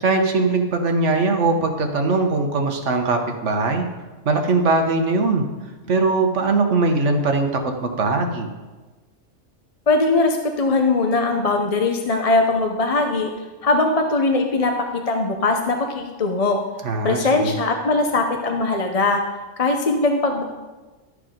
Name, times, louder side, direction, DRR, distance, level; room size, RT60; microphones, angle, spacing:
voice 1, 0.0-3.9 4.2-5.5 5.9-8.5 16.8-17.5, right 3 dB, 70° right, 4 dB, 1.4 m, -20 dB
voice 2, 9.9-13.3 13.6-16.6 17.0-19.2 19.6-20.4, left 3 dB, 35° left, 3 dB, 0.8 m, -20 dB
12.5 x 6.7 x 5.1 m, 1.2 s
omnidirectional pair, 1.3 m